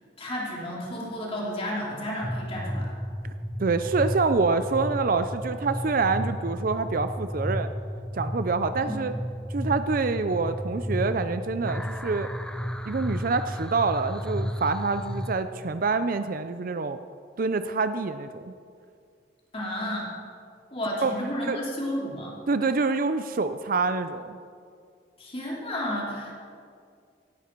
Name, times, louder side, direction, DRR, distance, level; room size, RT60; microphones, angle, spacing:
voice 1, 0.2-2.9 8.8-8.9 19.5-20.1 20.7-22.3 25.2-26.3, equal, 35° left, -4 dB, 3.0 m, -32 dB
sound 1, 2.2-15.3, equal, 5° left, 0.7 m, -33 dB
voice 2, 3.6-7.7 8.1-9.1 9.5-12.3 12.9-17.0 17.4-18.5 21.0-21.1 21.5-21.6 22.5-24.4, right 4 dB, 55° right, 10 dB, 0.5 m, -26 dB
17.5 x 12.5 x 4.6 m, 2.2 s
head